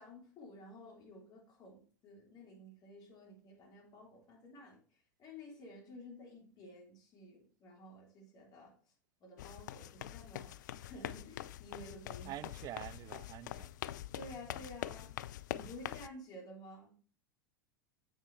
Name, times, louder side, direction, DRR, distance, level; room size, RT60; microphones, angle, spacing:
voice 1, 0.0-4.8 5.2-8.7 9.2-10.5 10.8-12.3 14.1-15.1 15.5-16.9, left 1 dB, 40° left, 3.2 m, -52 dB
sound 1, 9.4-16.1, left 13 dB, 65° left, 0.4 m, -44 dB
voice 2, 12.2-13.7, right 14 dB, 35° right, 0.3 m, -46 dB
7.3 x 6.4 x 3.2 m
figure-of-eight pair, 90°, 11 cm